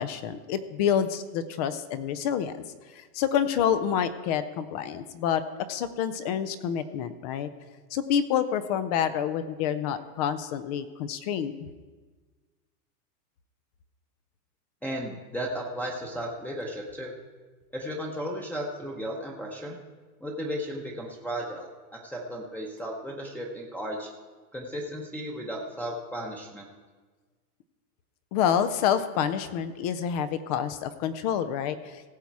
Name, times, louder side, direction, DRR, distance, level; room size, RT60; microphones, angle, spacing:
voice 1, 0.0-2.6 2.9-5.4 5.7-7.5 7.9-11.5 28.3-32.0, left 8 dB, 30° left, 13 dB, 0.4 m, -28 dB
voice 2, 14.8-17.1 17.7-19.8 20.2-24.1 24.5-26.7, equal, 5° left, -4 dB, 0.8 m, -35 dB
17.5 x 7.1 x 4.6 m, 1.4 s
supercardioid pair, 145°, 46 cm